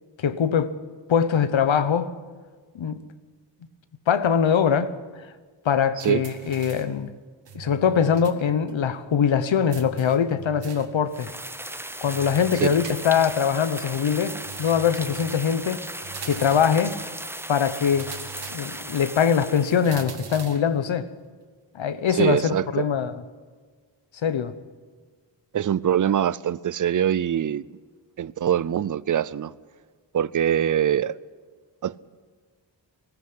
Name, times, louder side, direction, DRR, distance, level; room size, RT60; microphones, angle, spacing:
voice 1, 0.2-0.8 1.1-2.1 2.7-3.0 4.1-4.9 5.6-7.1 7.5-11.3 12.0-15.8 16.2-17.0 17.5-18.1 18.5-21.1 21.7-23.2 24.2-24.5, left 7 dB, 80° left, 1.1 m, -22 dB
sound 1, 6.0-7.0 7.5-8.4 8.7-8.8 9.7-11.0 12.1-13.4 14.4-15.5 16.0-16.8 17.9-18.9 19.8-20.7, right 6 dB, 65° right, 2.0 m, -41 dB
sound 2, 11.1-20.1, right 1 dB, 5° right, 0.8 m, -37 dB
voice 2, 22.1-22.9 25.5-27.6 28.2-29.5 30.1-31.2 31.8-31.9, right 9 dB, 45° right, 0.5 m, -23 dB
20.0 x 14.5 x 9.7 m
wide cardioid pair, 90°, 45 cm